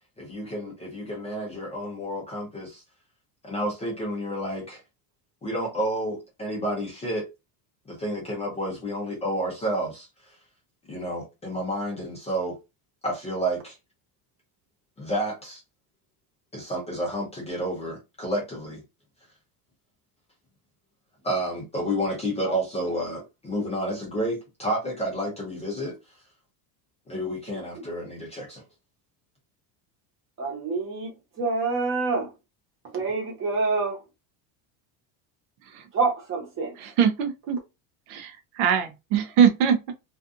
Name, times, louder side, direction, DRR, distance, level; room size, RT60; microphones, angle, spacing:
voice 1, 0.2-2.8 3.4-4.8 5.4-7.3 7.9-10.3 10.9-12.6 13.0-13.8 15.0-15.6 16.5-18.8 21.2-26.2 27.1-28.6, right 1 dB, 15° left, 0.5 m, -30 dB
voice 2, 27.5-27.9 30.4-32.3 32.8-34.0 35.9-36.8, right 4 dB, 25° right, 0.9 m, -27 dB
voice 3, 36.8-37.6 38.1-39.9, right 8 dB, 60° right, 0.6 m, -23 dB
2.5 x 2.5 x 2.4 m
cardioid pair, 165°, 48 cm